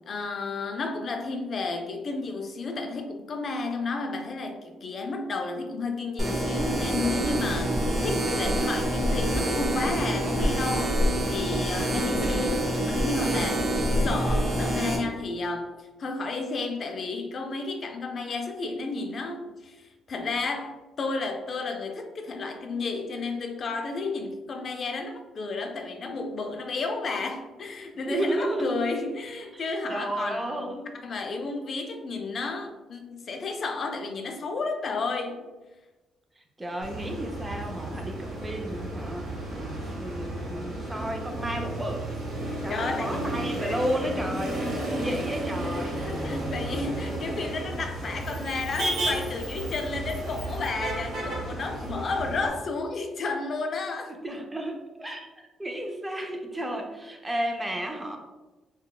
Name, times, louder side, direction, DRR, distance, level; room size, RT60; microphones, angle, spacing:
voice 1, 0.1-11.0 11.3-13.6 14.0-30.7 31.0-35.4 42.4-43.3 43.6-43.8 45.6-54.1, left 3 dB, 50° left, 5 dB, 0.3 m, -32 dB
sound 1, 6.2-15.0, right 1 dB, 40° right, 0.8 m, -26 dB
voice 2, 28.1-28.7 29.5-30.9 36.4-42.1 42.6-46.0 48.5-48.9 54.1-55.3 55.6-58.2, right 1 dB, 15° right, 3 dB, 0.4 m, -33 dB
Motor vehicle (road), 36.8-52.5, right 1 dB, 65° right, 1.0 m, -33 dB
3.8 x 2.2 x 2.3 m, 1.2 s
cardioid pair, 90°, 0 cm